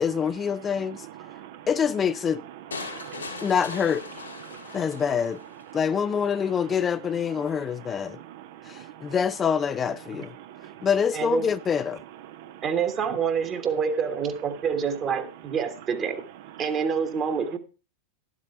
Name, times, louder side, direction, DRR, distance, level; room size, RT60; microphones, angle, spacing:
voice 1, 0.0-1.1 1.7-2.4 3.4-4.0 4.7-5.4 5.7-8.2 8.7-10.3 10.8-12.0, left 7 dB, 20° left, 0.4 m, -25 dB
voice 2, 1.2-1.7 2.8-3.5 4.5-4.8 8.6-9.1 10.4-10.7 12.4-12.6, right 12 dB, 50° right, 0.8 m, -44 dB
sound 1, 2.7-5.7, left 3 dB, 80° left, 2.2 m, -39 dB
voice 3, 11.1-11.4 12.6-16.2 16.6-17.6, right 6 dB, 30° right, 1.4 m, -27 dB
12.0 x 7.5 x 4.7 m
figure-of-eight pair, 90°, 0 cm